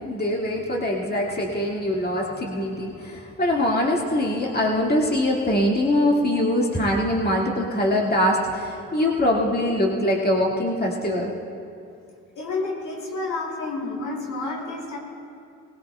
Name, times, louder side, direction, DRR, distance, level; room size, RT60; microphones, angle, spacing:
voice 1, 0.1-11.3, left 1 dB, 30° left, -2 dB, 2.0 m, -23 dB
voice 2, 12.3-15.0, left 3 dB, 80° left, -3 dB, 3.5 m, -30 dB
20.0 x 18.0 x 2.3 m, 2.5 s
supercardioid pair, 55°, 31 cm